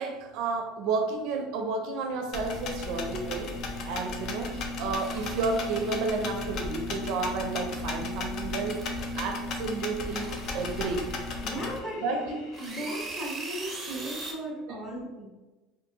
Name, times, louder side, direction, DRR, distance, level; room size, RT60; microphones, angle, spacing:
voice 1, 0.0-3.5 3.9-8.8 9.2-11.1 12.0-12.3 14.7-14.8, right 4 dB, 65° right, 4 dB, 0.4 m, -31 dB
sound 1, 2.3-11.8, left 2 dB, 50° left, 0.4 m, -35 dB
sound 2, 2.4-13.1, left 3 dB, 90° left, 0.8 m, -52 dB
sound 3, 5.0-6.6 7.7-8.4 8.7-9.6 10.0-11.8 12.5-14.3, right 3 dB, 20° right, 0.6 m, -42 dB
voice 2, 11.4-15.3, right 1 dB, 25° left, -6 dB, 1.3 m, -36 dB
2.6 x 2.6 x 2.6 m, 1.1 s
supercardioid pair, 125°, 0 cm